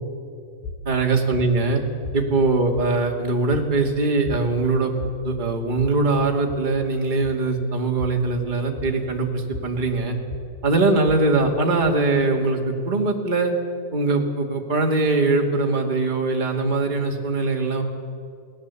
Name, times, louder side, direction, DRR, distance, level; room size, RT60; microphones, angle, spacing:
sound 1, 0.6-12.6, left 2 dB, 70° left, 3.1 m, -38 dB
voice 1, 0.8-1.8 2.1-4.9 5.2-10.1 10.6-13.5 13.9-17.8, right 3 dB, 20° right, 1 dB, 1.5 m, -22 dB
29.0 x 18.0 x 8.4 m, 2.3 s
omnidirectional pair, 4.5 m